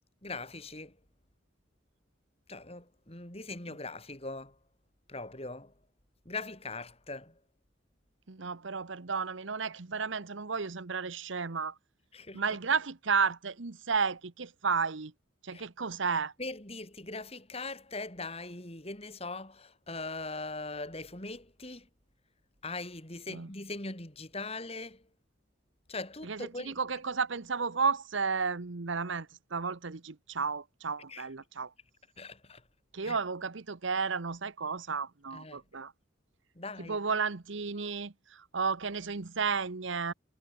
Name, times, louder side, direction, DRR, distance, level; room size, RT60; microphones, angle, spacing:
voice 1, 0.2-1.0 2.5-4.6 5.1-5.7 6.2-7.3 12.1-12.4 15.5-15.6 16.4-21.9 22.6-25.0 25.9-26.7 31.1-31.2 32.2-32.6 33.0-33.2 35.3-35.6 36.6-37.0 37.8-37.9, left 3 dB, 30° left, 4.6 m, -41 dB
voice 2, 8.3-11.8 12.3-15.1 15.4-16.3 23.3-23.5 26.2-31.7 32.9-35.9 36.8-40.1, right 5 dB, 70° right, 1.0 m, -33 dB
head